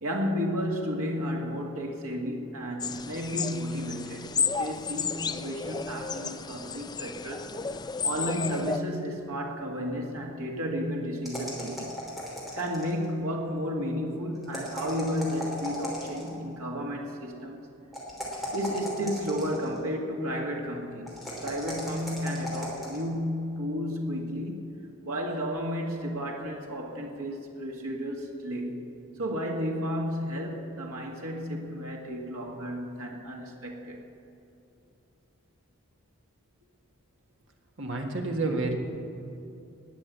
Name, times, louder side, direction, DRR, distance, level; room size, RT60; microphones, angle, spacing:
voice 1, 0.0-11.9 12.5-17.6 18.5-21.1 21.4-24.8 25.0-28.8 29.2-34.0, equal, 85° right, 0 dB, 1.9 m, -32 dB
sound 1, 2.8-8.8, left 5 dB, 20° left, 0.4 m, -32 dB
sound 2, 11.2-13.0 14.4-16.4 17.9-19.8 21.1-23.0, equal, ahead, 3.2 m, -37 dB
voice 2, 37.8-38.8, right 2 dB, 60° right, 2 dB, 1.8 m, -29 dB
19.5 x 6.8 x 8.1 m, 2.8 s
head